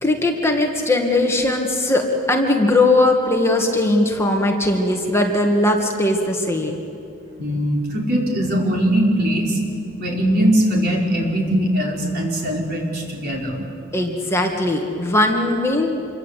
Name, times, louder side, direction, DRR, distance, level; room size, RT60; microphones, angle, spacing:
voice 1, 0.0-6.7 13.9-16.1, left 2 dB, 15° left, 1 dB, 2.0 m, -19 dB
voice 2, 7.4-9.6 10.0-13.6, equal, 50° right, -1 dB, 5.0 m, -20 dB
27.5 x 23.5 x 8.4 m, 2.6 s
head